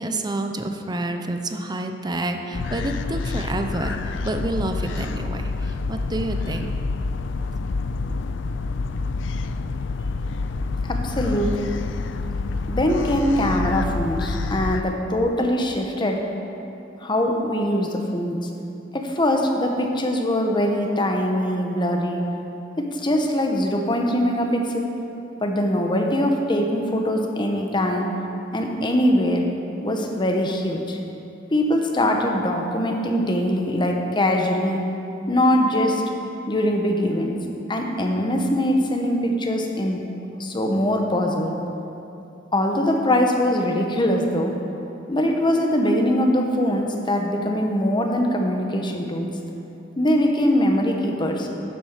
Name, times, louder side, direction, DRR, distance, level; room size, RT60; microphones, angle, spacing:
voice 1, 0.0-6.7, right 2 dB, 25° right, 5 dB, 0.7 m, -28 dB
sound 1, 2.5-14.8, left 3 dB, 75° left, 0.4 m, -28 dB
voice 2, 10.8-11.8 12.7-16.2 17.0-18.5 18.9-22.3 22.8-24.9 25.4-28.1 28.5-29.5 29.8-31.0 31.5-34.8 35.3-36.0 36.5-37.4 37.7-40.0 40.4-41.6 42.5-44.5 45.1-49.3 50.0-51.5, left 1 dB, 25° left, 2 dB, 1.0 m, -22 dB
9.9 x 7.6 x 6.6 m, 2.9 s
head